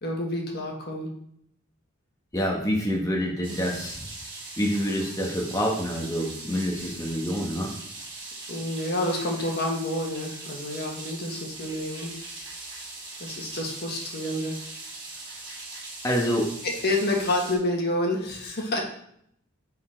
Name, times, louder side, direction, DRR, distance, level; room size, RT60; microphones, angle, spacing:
voice 1, 0.0-1.1 8.5-12.1 13.2-14.5 16.6-18.8, left 1 dB, 50° left, 1 dB, 1.5 m, -28 dB
voice 2, 2.3-4.0 4.6-7.7 15.2-15.4 16.0-16.6, equal, 15° left, -1 dB, 1.2 m, -27 dB
sound 1, 3.4-17.6, right 3 dB, 25° right, 2.5 m, -40 dB
9.6 x 4.2 x 4.3 m, 0.69 s
head